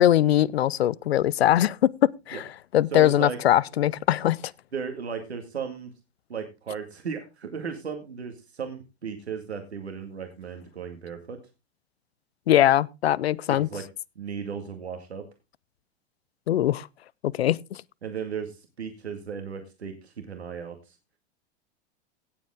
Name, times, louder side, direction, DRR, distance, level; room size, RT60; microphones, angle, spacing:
voice 1, 0.0-2.4 2.7-4.4 12.5-13.7 16.5-16.9 17.3-17.6, left 12 dB, 75° left, 0.6 m, -21 dB
voice 2, 2.9-3.4 4.7-5.9 6.3-11.4 13.5-13.8 14.2-15.3 18.0-21.0, right 6 dB, 85° right, 2.0 m, -35 dB
17.0 x 7.6 x 3.6 m
hypercardioid pair, 95°, 32 cm